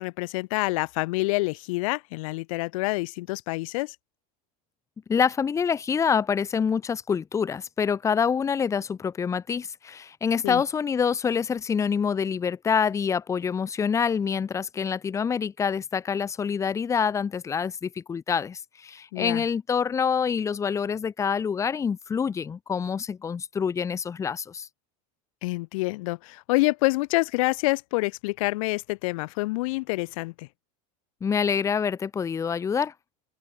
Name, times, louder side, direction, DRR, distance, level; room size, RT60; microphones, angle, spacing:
voice 1, 0.0-4.0 10.4-10.6 19.1-19.4 25.4-30.5, left 23 dB, 65° left, 2.0 m, -27 dB
voice 2, 5.1-24.7 31.2-32.9, left 6 dB, 15° left, 1.8 m, -26 dB
open air
supercardioid pair, 155°, 18 cm